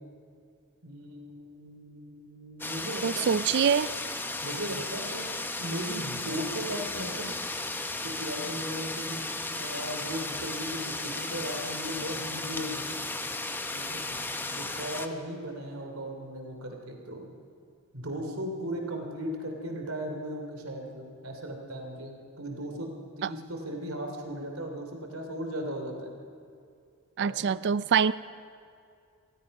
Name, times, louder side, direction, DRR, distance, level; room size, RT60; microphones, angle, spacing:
voice 1, 0.8-3.3 4.4-5.3 5.6-7.4 8.0-9.2 9.5-13.0 13.7-14.1 14.5-17.3 17.9-26.1 27.2-27.6, equal, 80° right, 3 dB, 3.1 m, -37 dB
sound 1, 2.6-15.1, left 2 dB, 10° left, 0.9 m, -35 dB
voice 2, 3.0-3.9 23.2-23.3 27.2-28.1, right 7 dB, 55° right, 17 dB, 0.4 m, -24 dB
27.0 x 18.5 x 5.4 m, 2.4 s
head